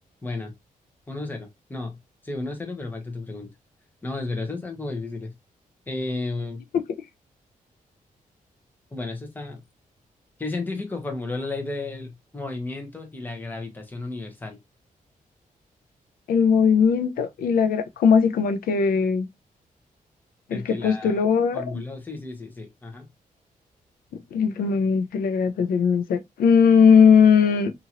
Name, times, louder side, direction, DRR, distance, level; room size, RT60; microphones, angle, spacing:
voice 1, 0.2-0.5 1.1-2.0 2.2-3.5 4.0-5.3 5.9-6.6 8.9-9.6 10.4-14.6 20.5-21.2 21.5-23.1, left 2 dB, 10° left, 0.8 m, -33 dB
voice 2, 16.3-19.3 20.5-21.6 24.3-27.7, left 6 dB, 90° left, 0.4 m, -19 dB
2.8 x 2.5 x 2.8 m
wide cardioid pair, 155°, 15 cm